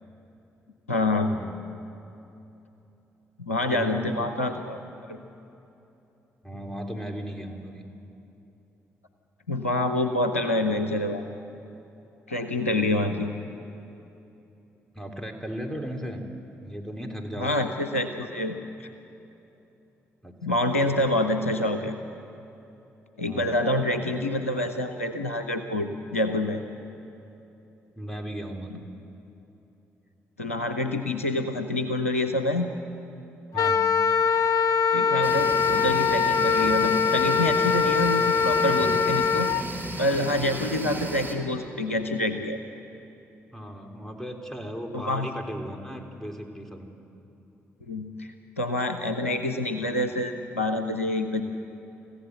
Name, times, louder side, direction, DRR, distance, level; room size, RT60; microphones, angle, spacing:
voice 1, 0.9-1.3 3.4-4.8 5.1-5.2 9.5-11.2 12.3-13.3 17.4-18.9 20.4-21.9 23.2-26.6 28.7-28.8 30.4-32.7 34.9-39.5 40.0-42.6 44.9-45.3 47.9-51.4, left 1 dB, 90° left, 8 dB, 0.7 m, -27 dB
voice 2, 3.7-4.3 6.4-7.8 14.9-16.2 16.6-17.6 20.2-20.9 23.2-23.6 28.0-28.9 33.5-33.9 38.6-39.0 43.5-46.9, equal, 5° left, 3 dB, 3.5 m, -36 dB
Wind instrument woodwind instrument, 33.5-39.6, left 6 dB, 55° left, 0.8 m, -22 dB
sound 1, 35.2-41.3, right 2 dB, 25° right, 4.1 m, -34 dB
28.5 x 15.0 x 7.8 m, 2.9 s
figure-of-eight pair, 40°, 7 cm